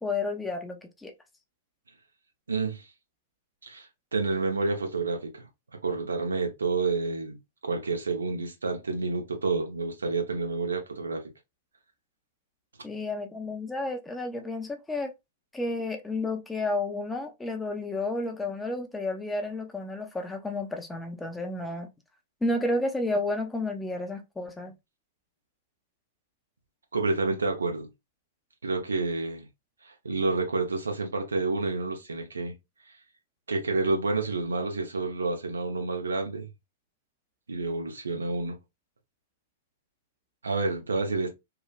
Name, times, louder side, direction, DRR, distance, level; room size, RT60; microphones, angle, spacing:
voice 1, 0.0-1.1 12.8-15.1 15.5-21.9 22.4-24.7, left 2 dB, 10° left, 0.5 m, -31 dB
voice 2, 2.5-2.8 3.6-5.4 5.8-7.4 7.6-11.3 26.9-27.9 28.6-29.5 29.8-32.5 33.5-36.5 37.5-38.6 40.4-41.3, right 3 dB, 80° right, 0.7 m, -29 dB
3.1 x 2.1 x 2.3 m
figure-of-eight pair, 105°, 0 cm